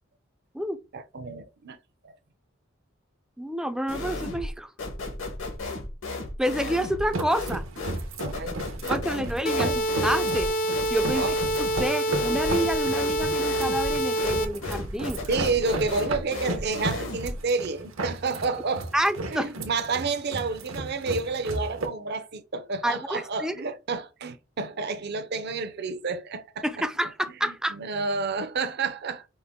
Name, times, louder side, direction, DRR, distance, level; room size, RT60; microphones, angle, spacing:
voice 1, 0.9-1.8 2.0-2.1 8.2-9.3 9.6-9.8 11.1-11.4 15.3-18.9 19.3-26.9 27.4-29.3, right 4 dB, 55° right, 0.6 m, -30 dB
voice 2, 3.4-4.7 6.4-7.6 8.9-10.5 10.9-11.3 11.6-15.2 18.9-19.5 22.8-23.5 26.6-27.8, equal, 5° right, 0.4 m, -28 dB
sound 1, 3.9-4.5 4.8-17.4, left 2 dB, 70° left, 1.2 m, -34 dB
sound 2, 7.0-21.9, right 2 dB, 80° right, 0.9 m, -35 dB
sound 3, 9.5-14.5, right 1 dB, 45° left, 0.6 m, -26 dB
5.3 x 2.1 x 3.5 m
head